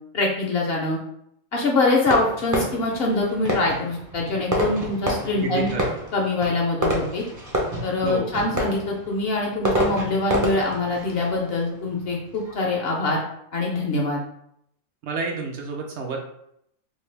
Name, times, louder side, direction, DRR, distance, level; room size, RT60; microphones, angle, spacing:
voice 1, 0.1-1.0 1.5-5.7 6.1-7.2 7.8-13.2 13.5-14.2, left 2 dB, 60° left, 0 dB, 0.7 m, -24 dB
Fireworks, 2.1-12.6, equal, 30° right, 0.3 m, -29 dB
voice 2, 5.4-5.9 8.0-8.3 15.0-16.2, right 4 dB, 70° right, 1 dB, 0.8 m, -29 dB
3.1 x 2.2 x 3.2 m, 0.74 s
omnidirectional pair, 1.3 m